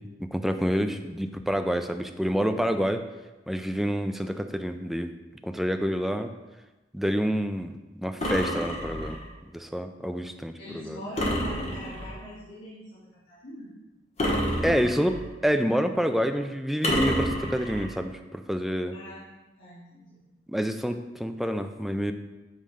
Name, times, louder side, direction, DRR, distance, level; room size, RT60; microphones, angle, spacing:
voice 1, 0.0-3.0 3.5-5.1 5.4-6.3 6.9-9.2 9.5-11.0 14.6-19.0 20.5-22.1, equal, ahead, 7 dB, 0.3 m, -28 dB
sound 1, 8.2-9.3 11.2-12.2 14.2-15.3 16.8-17.9, equal, 35° left, 1.1 m, -29 dB
voice 2, 10.6-13.7 18.9-19.3 19.6-20.2, equal, 85° left, -11 dB, 2.1 m, -42 dB
7.4 x 3.2 x 5.0 m, 1.1 s
head